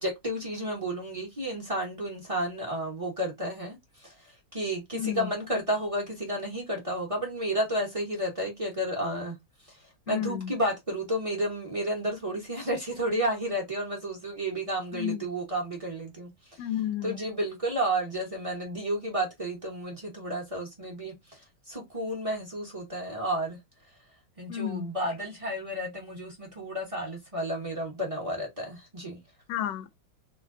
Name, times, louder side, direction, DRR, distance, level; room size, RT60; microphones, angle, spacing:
voice 1, 0.0-9.4 9.7-9.8 10.1-16.7 17.0-23.6 24.4-29.2, right 1 dB, 30° right, 0.7 m, -32 dB
voice 2, 4.9-5.3 10.1-10.5 14.9-15.2 16.6-17.2 24.5-24.9 29.5-29.9, left 11 dB, 85° left, 1.3 m, -31 dB
3.0 x 2.2 x 3.5 m
omnidirectional pair, 1.9 m